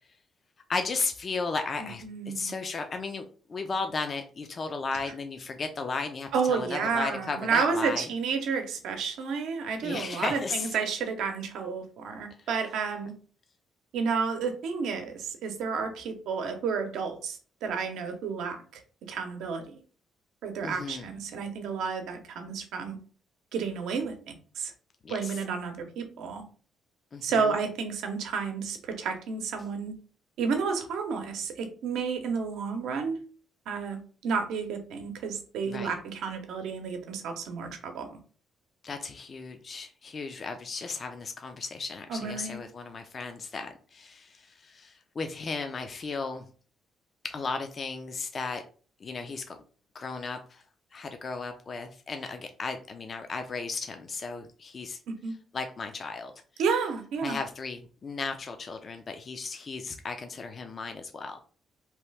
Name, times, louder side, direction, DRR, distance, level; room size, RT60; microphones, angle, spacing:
voice 1, 0.7-8.1 9.8-10.8 12.4-12.5 20.6-21.1 25.0-25.4 27.1-27.5 35.6-35.9 38.8-46.4 47.2-48.6 49.0-49.6 49.9-50.6 50.9-55.0 55.5-56.3 57.2-61.4, left 4 dB, 40° left, 6 dB, 0.4 m, -35 dB
voice 2, 1.8-2.5 6.3-13.1 13.9-18.6 19.1-19.7 20.4-23.0 23.5-24.7 25.1-26.4 27.2-29.9 30.4-33.2 33.7-38.2 42.1-42.6 55.1-55.3 56.6-57.4, right 5 dB, 85° right, 6 dB, 0.6 m, -31 dB
2.9 x 2.3 x 3.2 m, 0.40 s
cardioid pair, 90°, 0 cm